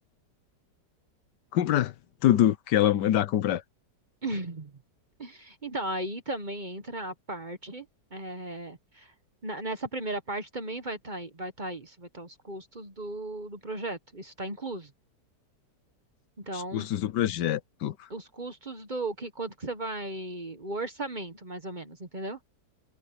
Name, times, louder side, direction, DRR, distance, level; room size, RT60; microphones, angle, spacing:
voice 1, 1.5-1.9 2.2-3.6 16.5-17.9, left 12 dB, 80° left, 1.4 m, -24 dB
voice 2, 4.2-4.7 5.2-7.9 8.1-9.1 9.4-14.9 16.4-16.9 18.1-22.4, right 2 dB, 30° right, 1.2 m, -36 dB
omnidirectional pair, 1.8 m